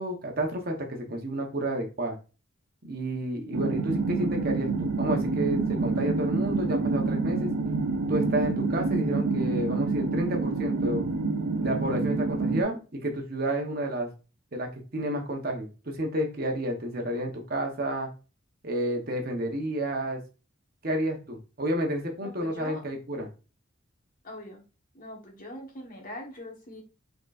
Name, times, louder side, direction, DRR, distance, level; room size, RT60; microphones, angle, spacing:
voice 1, 0.0-2.2 2.8-7.5 8.1-11.1 11.6-14.1 14.5-18.1 18.6-20.2 20.8-23.3, right 1 dB, 45° right, 2 dB, 0.9 m, -30 dB
sound 1, 3.5-12.6, right 3 dB, 70° right, 0.5 m, -27 dB
voice 2, 22.2-22.8 24.2-24.6 24.9-26.8, left 1 dB, 40° left, 0 dB, 1.3 m, -42 dB
4.3 x 3.8 x 2.5 m, 0.33 s
head